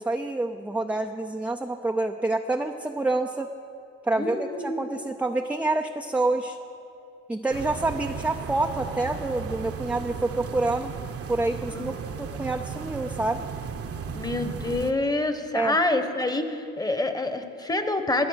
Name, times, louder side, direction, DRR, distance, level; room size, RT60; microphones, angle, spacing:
voice 1, 0.0-3.5 4.0-6.6 7.3-10.9 11.3-13.5 15.5-15.8, right 2 dB, 5° right, 4 dB, 0.5 m, -27 dB
voice 2, 4.1-5.0 11.7-11.8 14.1-18.3, left 2 dB, 15° left, 8 dB, 1.1 m, -27 dB
sound 1, 7.5-14.9, right 6 dB, 50° right, 1.0 m, -35 dB
21.0 x 8.0 x 6.4 m, 2.6 s
cardioid pair, 90°, 30 cm